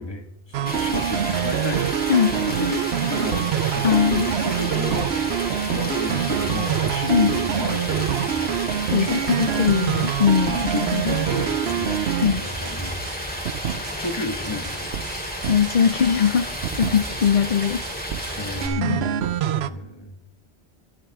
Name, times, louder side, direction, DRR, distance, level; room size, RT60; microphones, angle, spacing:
voice 1, 0.0-8.5 9.0-9.2 10.5-12.0 12.4-13.0 14.0-14.9 18.4-20.1, left 2 dB, 25° left, 4 dB, 1.7 m, -32 dB
sound 1, 0.5-13.2 13.4-14.2 14.4-16.3 16.6-17.3 17.6-19.7, right 10 dB, 80° right, 0.9 m, -26 dB
Stream, 0.7-18.7, equal, 10° left, 3.0 m, -31 dB
voice 2, 3.8-4.3 7.1-7.3 8.9-11.2 12.2-12.4 15.4-17.8 18.8-19.1, left 7 dB, 50° left, 11 dB, 0.6 m, -21 dB
23.0 x 10.5 x 3.5 m, 0.87 s
omnidirectional pair, 1.1 m